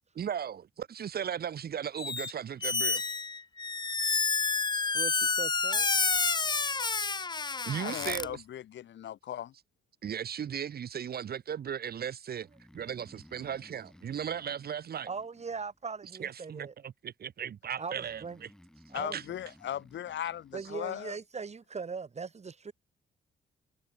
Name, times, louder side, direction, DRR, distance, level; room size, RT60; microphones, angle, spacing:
voice 1, 0.2-3.1 7.6-8.4 10.0-12.5 12.7-15.1 16.2-18.5 19.1-19.2, right 8 dB, 50° right, 1.3 m, -36 dB
Squeak, 2.0-2.3 2.6-8.3, left 4 dB, 20° left, 0.8 m, -29 dB
voice 2, 4.9-5.9 15.1-16.7 17.8-18.4 18.9-19.2 20.5-22.7, right 5 dB, 35° right, 3.1 m, -40 dB
voice 3, 7.8-9.5 18.9-21.2, left 11 dB, 65° left, 1.9 m, -38 dB
Breathing, 12.4-16.1 17.9-21.0, equal, 5° left, 4.5 m, -58 dB
cardioid pair, 90°, 20 cm